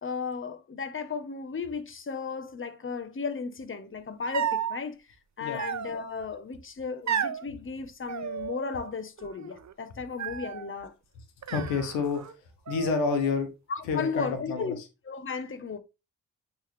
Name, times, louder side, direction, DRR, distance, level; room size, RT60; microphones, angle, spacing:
voice 1, 0.0-5.0 5.4-10.9 13.7-15.8, left 5 dB, 30° left, 1.1 m, -35 dB
sound 1, 4.3-4.8 5.6-6.3 7.1-7.4 8.1-8.9 9.2-9.7 10.2-10.7 11.4-12.3 12.7-13.4, right 8 dB, 40° right, 0.9 m, -33 dB
voice 2, 11.5-12.3 12.7-13.5 13.8-14.8, left 5 dB, 90° left, 1.2 m, -28 dB
8.9 x 3.5 x 3.4 m
hypercardioid pair, 40°, 43 cm